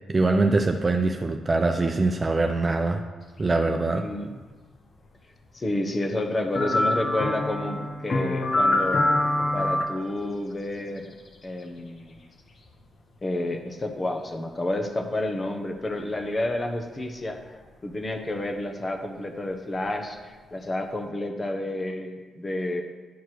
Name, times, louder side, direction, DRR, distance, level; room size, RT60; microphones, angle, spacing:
voice 1, 0.1-3.0 3.4-4.0, right 3 dB, 35° right, 4 dB, 0.6 m, -23 dB
voice 2, 3.9-4.4 5.5-9.0 9.5-11.1 11.4-12.2 13.2-17.4 17.8-22.8, left 1 dB, 35° left, 4 dB, 1.2 m, -30 dB
sound 1, 6.5-9.8 12.7-12.8, left 1 dB, 50° left, 1.0 m, -24 dB
10.5 x 4.6 x 4.6 m, 1.3 s
supercardioid pair, 50°, 0 cm